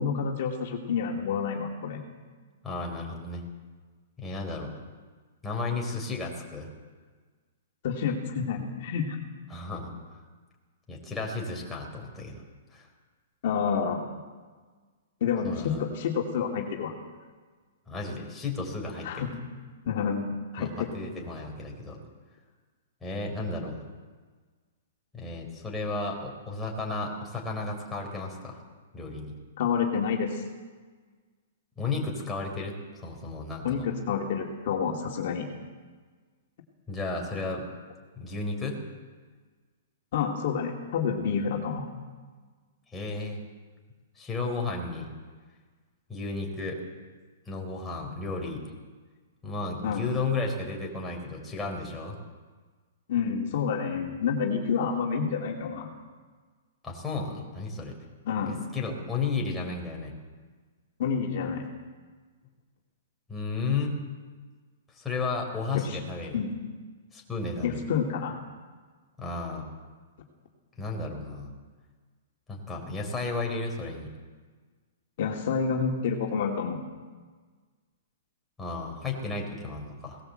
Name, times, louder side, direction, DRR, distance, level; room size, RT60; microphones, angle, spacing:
voice 1, 0.0-2.0 7.8-9.2 13.4-14.0 15.2-16.9 19.0-19.3 19.9-20.9 29.6-30.4 33.6-35.5 40.1-41.8 49.8-50.0 53.1-55.9 58.3-58.6 61.0-61.6 65.7-66.0 66.3-66.6 67.6-68.3 75.2-76.8, left 6 dB, 50° left, 0 dB, 2.7 m, -29 dB
voice 2, 2.6-3.4 4.2-4.7 5.4-6.7 9.5-10.2 10.9-12.4 12.7-12.9 15.4-15.8 17.9-19.3 20.6-22.0 23.0-23.8 25.1-28.6 28.9-29.4 31.8-33.9 36.9-37.6 38.2-38.8 42.9-43.4 44.2-45.1 46.1-46.8 47.5-48.6 49.4-52.2 56.8-57.9 58.5-60.1 63.3-64.0 65.0-66.4 67.1-67.8 69.2-69.7 70.8-71.5 72.5-74.1 78.6-80.2, left 3 dB, 5° left, -2 dB, 4.1 m, -33 dB
20.0 x 18.5 x 7.9 m, 1.4 s
hypercardioid pair, 160°, 0 cm